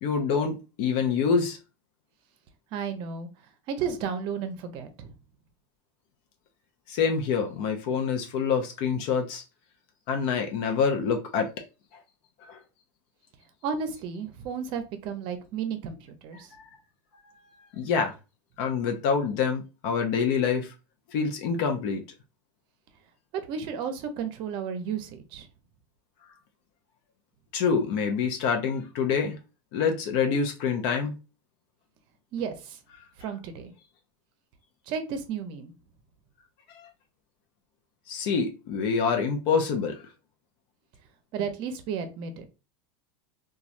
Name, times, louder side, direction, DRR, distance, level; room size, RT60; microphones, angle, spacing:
voice 1, 0.0-1.6 6.9-9.4 10.1-11.5 12.4-12.6 16.5-16.7 17.7-18.1 18.6-20.7 21.1-22.0 27.5-29.4 29.7-31.2 36.7-36.9 38.1-40.0, left 6 dB, 55° left, 0.6 m, -26 dB
voice 2, 2.7-3.3 3.7-5.1 13.6-16.5 23.5-25.5 32.3-32.8 33.2-33.7 34.9-35.7 41.3-42.5, right 6 dB, 45° right, 0.6 m, -33 dB
3.0 x 2.3 x 2.5 m
supercardioid pair, 140°, 11 cm